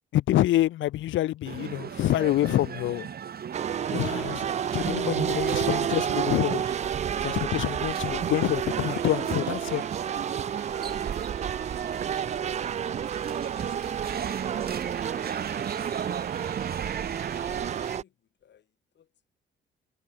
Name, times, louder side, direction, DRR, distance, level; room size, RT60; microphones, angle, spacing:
voice 1, 0.1-3.1 3.9-4.5 4.7-6.6 7.2-9.8, left 14 dB, 80° left, 0.9 m, -26 dB
sound 1, 1.4-18.0, right 8 dB, 50° right, 2.5 m, -37 dB
sound 2, 3.5-18.0, right 9 dB, 35° right, 0.4 m, -30 dB
voice 2, 17.3-19.1, left 9 dB, 60° left, 6.6 m, -59 dB
cardioid pair, 90°, 20 cm